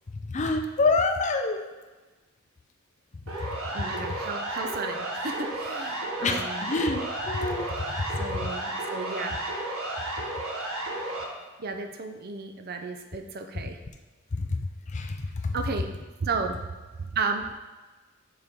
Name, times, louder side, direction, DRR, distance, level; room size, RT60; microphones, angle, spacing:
voice 1, 0.3-1.6 6.2-7.7 14.3-14.4 14.9-15.2 15.4-15.5, left 3 dB, 35° left, 5 dB, 0.4 m, -26 dB
Siren, 3.3-11.2, right 1 dB, 80° right, 1.3 m, -33 dB
voice 2, 3.7-6.7 8.2-9.4 11.6-13.8 15.5-16.7 17.0-17.5, right 4 dB, 45° right, 6 dB, 0.5 m, -33 dB
6.8 x 4.3 x 3.6 m, 1.3 s
head